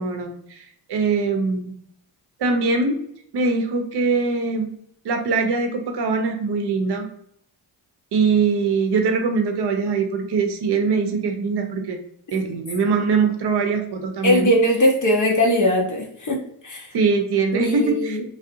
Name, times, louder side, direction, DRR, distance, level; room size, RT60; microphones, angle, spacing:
voice 1, 0.0-1.7 2.4-2.9 3.3-4.7 5.0-7.1 8.1-12.0 12.3-14.5 16.9-18.2, right 4 dB, 55° right, 5 dB, 0.6 m, -22 dB
voice 2, 14.2-16.9 17.5-18.2, equal, 40° left, 0 dB, 0.6 m, -20 dB
2.7 x 2.0 x 2.5 m, 0.70 s
cardioid pair, 60°, 49 cm